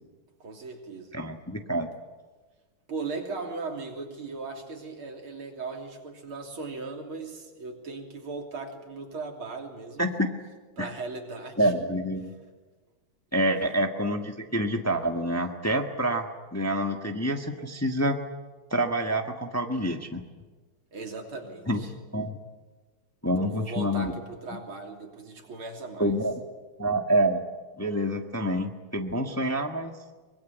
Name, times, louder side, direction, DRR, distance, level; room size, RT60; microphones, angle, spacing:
voice 1, 0.4-1.1 2.9-10.1 10.8-11.8 13.5-13.8 20.9-21.9 23.4-26.2, right 3 dB, 80° right, 2 dB, 4.0 m, -38 dB
voice 2, 1.1-1.9 10.0-10.3 10.8-10.9 11.6-12.3 13.3-18.2 18.7-20.2 21.7-21.8 22.1-22.4 23.2-24.1 26.0-26.4 26.8-27.4 27.8-29.9, right 1 dB, 10° left, 4 dB, 1.2 m, -27 dB
24.0 x 22.0 x 9.3 m, 1.3 s
omnidirectional pair, 2.3 m